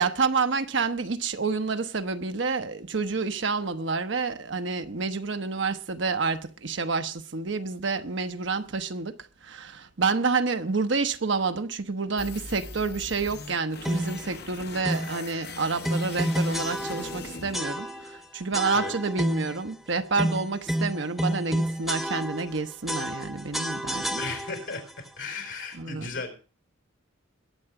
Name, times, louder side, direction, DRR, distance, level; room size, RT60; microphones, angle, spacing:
voice 1, 0.0-9.1 9.4-24.2 25.8-26.1, right 4 dB, 65° right, 0.9 m, -28 dB
sound 1, 12.2-18.2, left 4 dB, 55° left, 1.2 m, -41 dB
sound 2, 13.8-14.3 14.8-15.2 15.8-17.2 17.5-18.2 18.5-19.6 20.2-22.6 22.9-24.7, equal, ahead, 0.9 m, -30 dB
voice 2, 24.2-24.8 25.2-26.3, left 4 dB, 80° left, 4.6 m, -35 dB
21.5 x 7.8 x 4.8 m
head